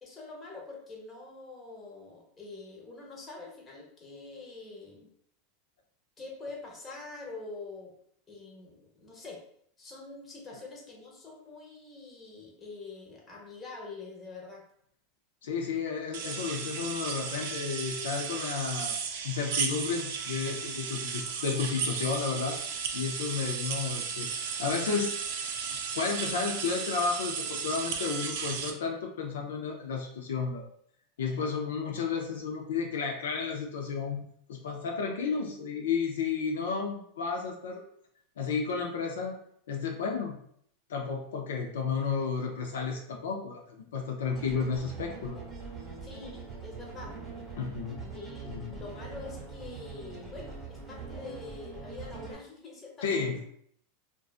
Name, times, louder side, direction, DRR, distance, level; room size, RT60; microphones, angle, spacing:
voice 1, 0.0-5.1 6.2-7.9 8.3-9.4 9.8-14.6 46.0-47.2 48.1-53.4, left 3 dB, 25° left, -2 dB, 0.8 m, -45 dB
voice 2, 15.4-19.0 19.2-22.6 22.9-25.2 26.0-30.6 31.2-34.2 34.5-37.8 38.4-39.4 39.7-40.3 40.9-45.4 47.6-48.1 48.5-48.8 53.0-53.4, left 5 dB, 85° left, 2 dB, 0.4 m, -32 dB
sound 1, 16.1-28.7, right 6 dB, 70° right, 0.4 m, -34 dB
sound 2, 44.4-52.4, right 4 dB, 15° right, 0.9 m, -43 dB
2.5 x 2.2 x 2.3 m, 0.66 s
supercardioid pair, 120°, 0 cm